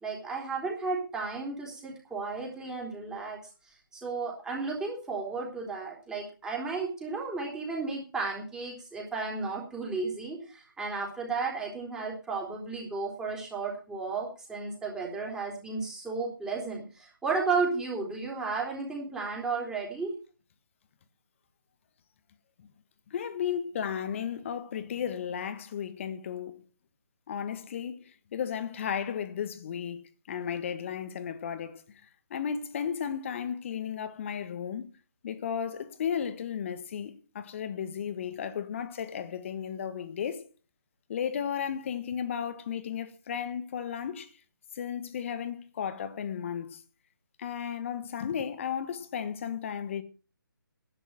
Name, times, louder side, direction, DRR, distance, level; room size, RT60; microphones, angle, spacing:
voice 1, 0.0-3.4 3.6-20.1, right 4 dB, 5° right, 3.4 m, -33 dB
voice 2, 23.1-26.6 27.3-28.0 28.3-31.8 32.3-34.9 35.2-40.5 41.1-44.3 44.7-46.8 47.4-50.0, left 8 dB, 35° left, 1.6 m, -34 dB
11.0 x 8.9 x 7.6 m
figure-of-eight pair, 150°, 12 cm